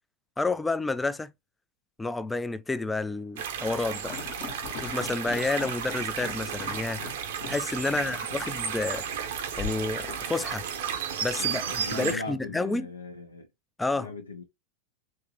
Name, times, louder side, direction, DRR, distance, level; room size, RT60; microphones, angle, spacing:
voice 1, 0.4-1.3 2.0-4.2 4.8-7.0 7.5-9.1 9.6-10.6 11.2-12.9 13.8-14.1, left 3 dB, 10° left, 0.3 m, -30 dB
sound 1, 3.4-12.2, right 8 dB, 55° right, 0.7 m, -33 dB
sound 2, 4.0-7.6 7.9-8.0 8.4-8.6 9.6-10.7, left 5 dB, 50° left, 0.9 m, -39 dB
voice 2, 7.9-8.4 11.4-13.5 13.9-14.4, left 2 dB, 80° left, 0.6 m, -39 dB
3.5 x 2.9 x 2.8 m
figure-of-eight pair, 90°, 0 cm